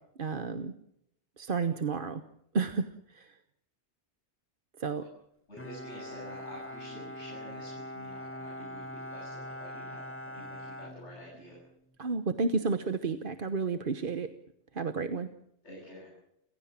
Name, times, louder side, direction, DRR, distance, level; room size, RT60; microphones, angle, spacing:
voice 1, 0.2-0.7 1.4-2.2 2.5-3.4 4.8-5.1 12.0-14.3 14.7-15.3, right 4 dB, 50° right, 10 dB, 1.2 m, -31 dB
voice 2, 5.5-10.0 10.3-11.6 15.6-16.1, equal, 75° left, -3 dB, 8.0 m, -48 dB
Bowed string instrument, 5.6-11.7, left 1 dB, 10° left, 1.5 m, -42 dB
29.5 x 16.0 x 7.4 m, 0.78 s
omnidirectional pair, 1.2 m